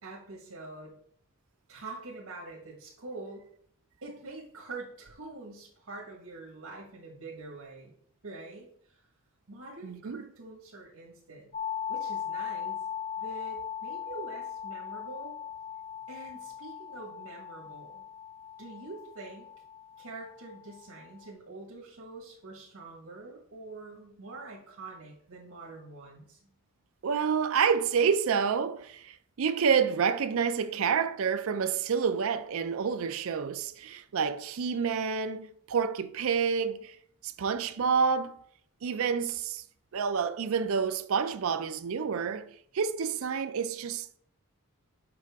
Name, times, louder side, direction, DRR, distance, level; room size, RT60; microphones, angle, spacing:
voice 1, 0.0-0.9 1.7-3.4 4.0-7.9 8.2-9.0 9.5-11.5 11.9-12.8 13.2-15.3 16.1-18.0 18.6-19.5 20.0-26.5 35.4-35.5, right 3 dB, 80° right, 1.4 m, -45 dB
voice 2, 9.8-10.2 27.0-37.0 37.2-38.4 38.8-39.6 39.9-44.2, right 6 dB, 65° right, 0.4 m, -28 dB
sound 1, 11.5-21.3, left 8 dB, 30° left, 0.4 m, -39 dB
6.9 x 4.9 x 3.5 m
head